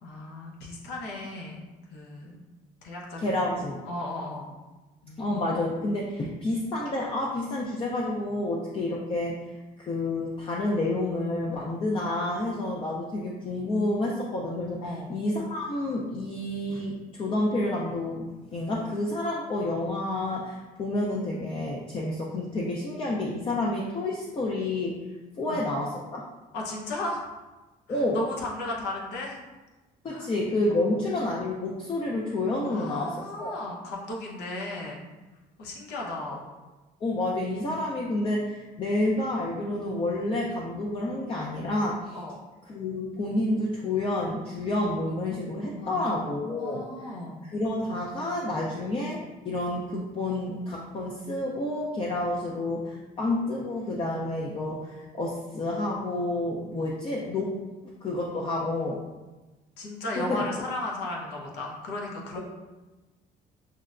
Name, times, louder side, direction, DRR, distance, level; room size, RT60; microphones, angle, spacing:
voice 1, 0.0-1.6 1.9-2.4 2.8-3.4 3.8-4.5 5.0-5.4 14.8-15.2 25.5-25.6 26.5-27.3 27.9-29.4 30.1-30.3 30.7-30.9 32.6-35.0 35.6-36.5 42.1-42.4 45.8-47.4 59.8-62.4, left 2 dB, 90° left, -2 dB, 0.8 m, -35 dB
voice 2, 3.2-3.8 5.2-25.1 25.4-26.2 27.9-28.2 30.0-33.5 37.0-42.2 42.7-46.8 47.4-57.6 58.0-59.0 60.2-60.4, left 2 dB, 35° left, -3 dB, 0.5 m, -29 dB
5.6 x 2.1 x 2.4 m, 1.2 s
cardioid pair, 110°, 17 cm